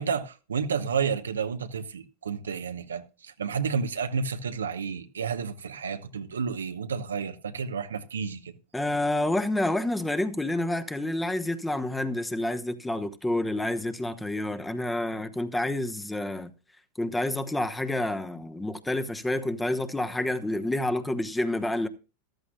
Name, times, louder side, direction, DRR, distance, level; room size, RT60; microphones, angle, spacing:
voice 1, 0.0-8.5, right 6 dB, 85° right, 0.9 m, -31 dB
voice 2, 8.7-16.5 17.0-21.9, left 1 dB, 10° left, 1.1 m, -28 dB
14.5 x 12.5 x 2.3 m
hypercardioid pair, 100°, 0 cm